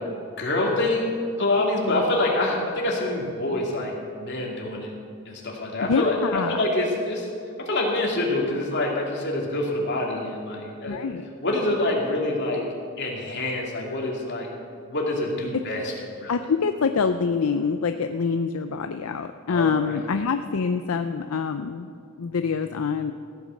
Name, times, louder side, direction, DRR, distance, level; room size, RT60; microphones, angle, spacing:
voice 1, 0.4-3.9 4.2-4.9 5.3-7.3 7.7-11.0 11.4-12.6 13.0-14.5 14.9-15.9 16.2-16.3 19.5-20.0, left 2 dB, 55° left, -2 dB, 2.7 m, -26 dB
voice 2, 5.8-6.6 10.8-11.3 15.5-15.6 16.3-21.9 22.2-23.1, left 5 dB, 75° left, 8 dB, 0.5 m, -25 dB
15.0 x 9.1 x 6.5 m, 2.5 s
head